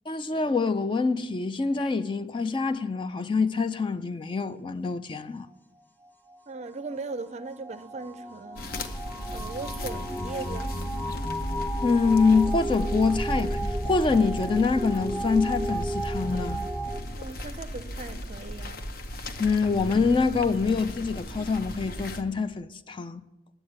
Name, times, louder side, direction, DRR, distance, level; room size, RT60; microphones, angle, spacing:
voice 1, 0.1-5.5 11.8-16.6 19.4-23.2, left 4 dB, 30° left, 0.3 m, -25 dB
sound 1, 5.8-17.0, right 1 dB, 10° left, 0.7 m, -34 dB
voice 2, 6.5-9.0 9.3-10.7 17.2-18.9, right 3 dB, 40° right, 0.5 m, -38 dB
sound 2, 8.6-22.2, left 1 dB, 55° left, 0.8 m, -36 dB
10.0 x 7.9 x 8.6 m
head